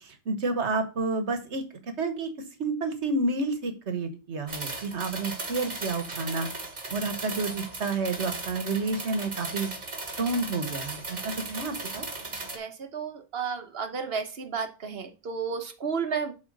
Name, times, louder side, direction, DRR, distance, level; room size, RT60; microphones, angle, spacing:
voice 1, 0.0-1.6 2.0-2.3 2.6-6.5 6.9-9.7 10.2-12.1, right 3 dB, 85° right, 8 dB, 1.6 m, -30 dB
sound 1, 4.5-12.6, right 2 dB, 40° right, 1.6 m, -37 dB
voice 2, 12.2-16.3, right 6 dB, 65° right, 7 dB, 1.3 m, -33 dB
7.7 x 4.2 x 6.6 m, 0.33 s
omnidirectional pair, 1.1 m